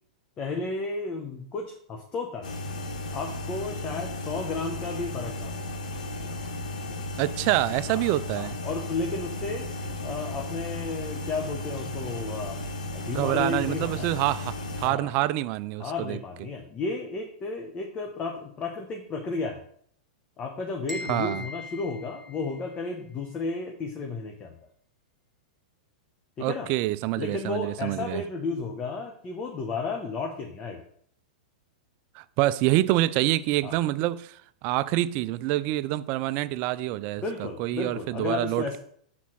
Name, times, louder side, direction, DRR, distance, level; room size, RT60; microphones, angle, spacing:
voice 1, 0.4-2.5 3.1-5.6 7.9-8.1 8.3-9.7 10.0-12.6 12.9-14.1 14.8-15.1 15.8-19.6 20.4-24.5 26.4-26.7 27.2-30.8 33.6-33.8 37.2-38.8, left 3 dB, 25° left, 1.0 m, -33 dB
sound 1, 2.4-14.9, left 1 dB, 85° left, 1.4 m, -35 dB
voice 2, 7.2-8.6 13.1-16.2 21.1-21.5 26.4-28.2 32.1-38.8, right 16 dB, 45° right, 0.3 m, -27 dB
sound 2, 20.9-22.9, left 2 dB, ahead, 1.3 m, -40 dB
5.9 x 4.1 x 6.2 m
hypercardioid pair, 120°, 4 cm